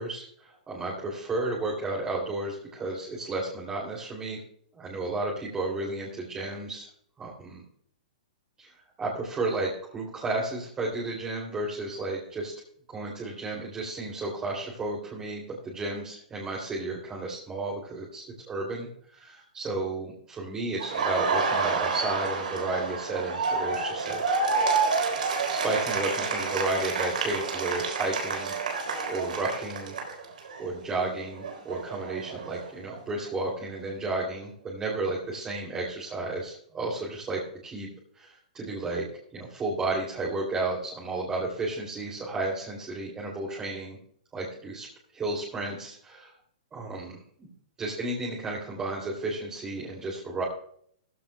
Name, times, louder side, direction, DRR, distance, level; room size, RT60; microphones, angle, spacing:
voice 1, 0.0-4.4 4.7-6.8 7.2-7.6 8.6-12.5 12.9-24.2 25.5-28.5 29.0-30.0 30.6-37.9 38.1-39.1 39.3-44.0 44.3-44.9 45.1-46.3 46.7-47.5 47.8-50.4, right 2 dB, 15° right, -4 dB, 3.0 m, -33 dB
Laughter, 20.8-30.6 30.9-33.0, right 4 dB, 85° right, 3.7 m, -29 dB
15.0 x 15.0 x 2.3 m, 0.63 s
hypercardioid pair, 150°, 4 cm